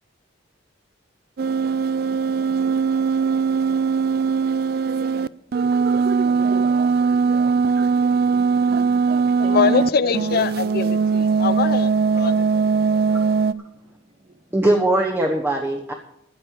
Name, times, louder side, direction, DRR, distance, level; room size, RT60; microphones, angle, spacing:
sound 1, 1.4-9.9 10.1-13.5, right 5 dB, 50° right, 0.4 m, -20 dB
voice 1, 8.3-10.4 10.9-11.0 13.6-14.5, right 1 dB, 35° right, 3 dB, 1.2 m, -40 dB
voice 2, 9.4-12.5, left 5 dB, 50° left, 15 dB, 0.6 m, -23 dB
voice 3, 14.5-15.9, right 1 dB, 10° right, 1 dB, 1.1 m, -20 dB
14.5 x 5.4 x 9.1 m, 0.77 s
head